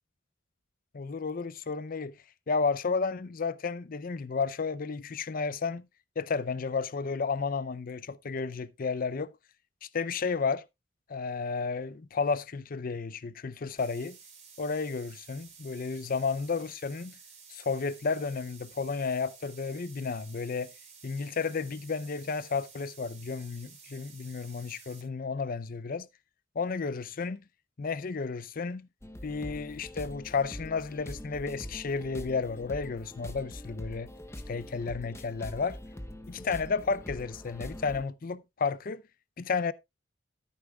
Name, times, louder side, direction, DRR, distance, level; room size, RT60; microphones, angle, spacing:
voice 1, 0.9-2.1 2.5-5.8 6.2-9.3 9.8-10.6 11.1-14.2 14.6-17.2 17.5-20.7 21.0-26.1 26.6-27.4 27.8-28.9 29.2-34.1 34.5-35.8 36.3-39.0 39.4-39.7, left 4 dB, 45° left, 0.5 m, -32 dB
sound 1, 13.8-25.0, right 6 dB, 40° right, 3.3 m, -53 dB
sound 2, 29.0-38.0, left 1 dB, 15° left, 0.8 m, -43 dB
12.5 x 9.6 x 2.3 m
head